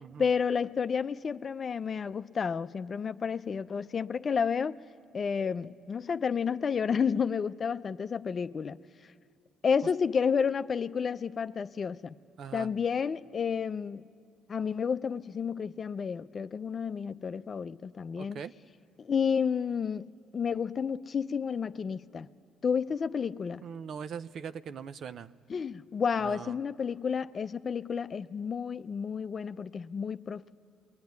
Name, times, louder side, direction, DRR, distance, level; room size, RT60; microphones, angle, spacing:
voice 1, 0.2-4.8 5.1-8.8 9.0-9.1 9.6-12.2 12.5-14.0 14.5-18.4 19.0-20.1 20.3-22.3 22.6-23.6 25.5-30.5, left 6 dB, 45° left, 0.6 m, -31 dB
voice 2, 12.4-12.7 18.1-18.5 23.6-25.3 26.2-26.6, right 7 dB, 60° right, 0.7 m, -41 dB
28.0 x 21.5 x 9.5 m
supercardioid pair, 65°, 0 cm